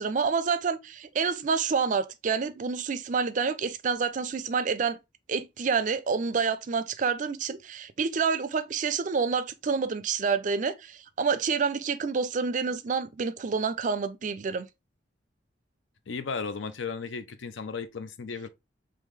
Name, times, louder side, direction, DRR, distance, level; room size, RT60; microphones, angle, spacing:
voice 1, 0.0-5.0 5.3-14.7, right 5 dB, 45° right, 0.4 m, -28 dB
voice 2, 16.1-18.5, left 5 dB, 90° left, 0.5 m, -35 dB
3.2 x 3.0 x 3.6 m
head